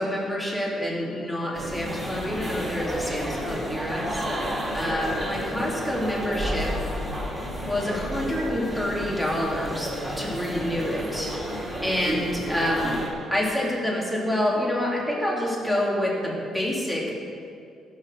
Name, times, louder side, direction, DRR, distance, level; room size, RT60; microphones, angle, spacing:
voice 1, 0.0-4.2 4.7-6.7 7.6-13.0 13.3-17.2, left 1 dB, 5° left, -4 dB, 3.4 m, -27 dB
sound 1, 1.5-13.1, equal, 10° right, 3.4 m, -31 dB
16.5 x 6.5 x 6.7 m, 2.4 s
cardioid pair, 90°, 0 cm